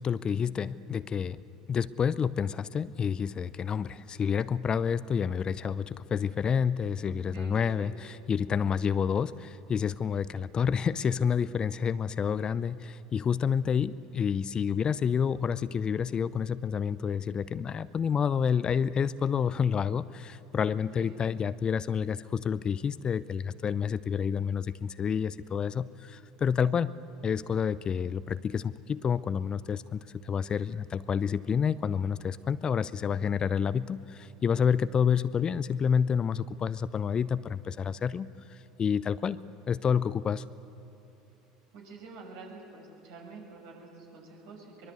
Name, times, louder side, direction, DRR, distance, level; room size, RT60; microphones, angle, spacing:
voice 1, 0.0-1.4 1.7-26.9 27.2-39.4 39.7-40.4, left 7 dB, 30° left, 16 dB, 0.6 m, -29 dB
voice 2, 7.3-7.9 21.0-21.2 41.7-44.9, right 3 dB, 65° right, 0 dB, 6.0 m, -47 dB
23.0 x 22.0 x 8.2 m, 2.8 s
hypercardioid pair, 75°, 3 cm